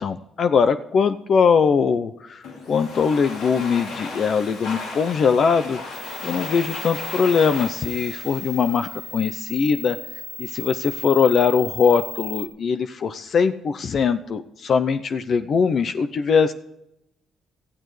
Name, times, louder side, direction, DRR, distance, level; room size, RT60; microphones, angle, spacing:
voice 1, 0.0-5.8 6.2-10.0 10.4-16.5, left 6 dB, 55° left, 10 dB, 0.6 m, -21 dB
Domestic sounds home sounds, 2.4-9.3, left 3 dB, 80° left, 3.2 m, -36 dB
sound 1, 5.9-12.5, left 3 dB, 30° left, 3.8 m, -36 dB
18.5 x 14.0 x 3.3 m, 0.83 s
cardioid pair, 90°, 0 cm